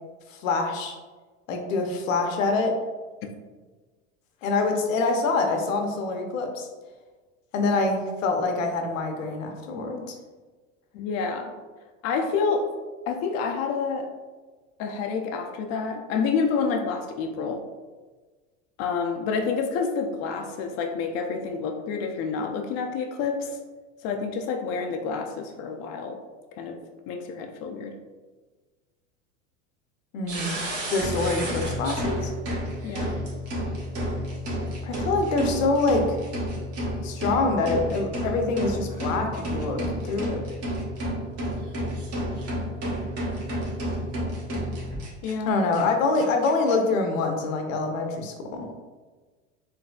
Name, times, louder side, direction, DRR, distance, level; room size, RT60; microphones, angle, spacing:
voice 1, 0.3-1.0 1.5-2.8 4.4-6.7 7.5-10.2 30.1-30.6 30.9-32.3 34.8-36.2 37.0-40.4 45.5-48.8, left 3 dB, 80° left, 4 dB, 0.7 m, -25 dB
voice 2, 10.9-11.5 12.0-12.7 13.1-14.1 14.8-17.6 18.8-23.6 24.0-26.2 26.5-26.8 27.1-28.0 32.8-33.2 45.2-45.6, left 5 dB, 45° left, 3 dB, 0.4 m, -28 dB
sound 1, 30.3-45.3 45.7-45.8 46.1-46.7, equal, 40° right, 1.1 m, -30 dB
4.0 x 2.7 x 2.3 m, 1.3 s
hypercardioid pair, 95°, 38 cm